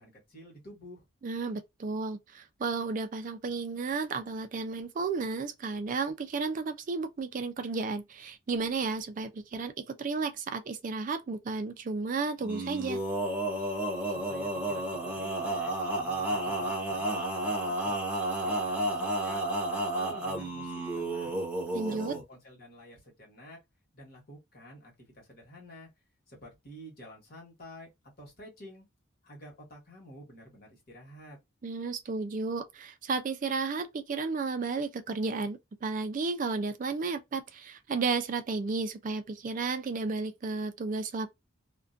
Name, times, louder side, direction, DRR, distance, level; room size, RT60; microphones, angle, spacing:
voice 1, 0.0-1.0 14.1-18.0 18.4-19.4 19.7-21.4 21.8-23.6 23.9-25.9 26.3-27.9 28.2-28.8 29.2-31.4, left 1 dB, 50° left, 1.2 m, -50 dB
voice 2, 1.2-13.0 21.7-22.1 31.6-41.3, right 4 dB, 40° right, 0.3 m, -33 dB
Male singing, 12.4-22.2, right 1 dB, 5° right, 0.7 m, -32 dB
2.4 x 2.2 x 2.5 m
head